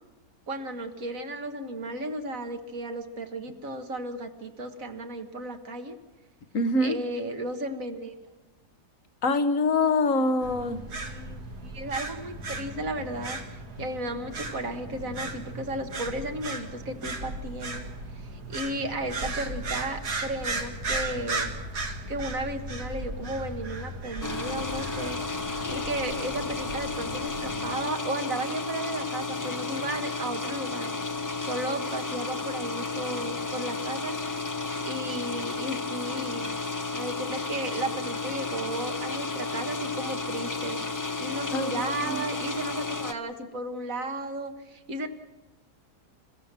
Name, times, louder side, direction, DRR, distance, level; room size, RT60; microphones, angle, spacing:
voice 1, 0.5-6.0 6.8-8.2 10.9-13.4 13.8-17.9 18.2-21.5 22.1-25.2 25.7-30.9 31.4-34.2 34.8-36.5 36.9-40.8 41.2-45.1, right 1 dB, 60° right, 6 dB, 1.9 m, -34 dB
voice 2, 6.5-7.0 9.2-10.9 25.6-25.9 41.5-41.7 42.1-42.2, left 2 dB, 55° left, 10 dB, 1.4 m, -25 dB
sound 1, 10.4-27.7, right 2 dB, 75° right, 2.4 m, -36 dB
sound 2, 24.2-43.1, left 3 dB, 20° left, 0.5 m, -32 dB
27.5 x 15.5 x 7.5 m, 1.1 s
omnidirectional pair, 1.7 m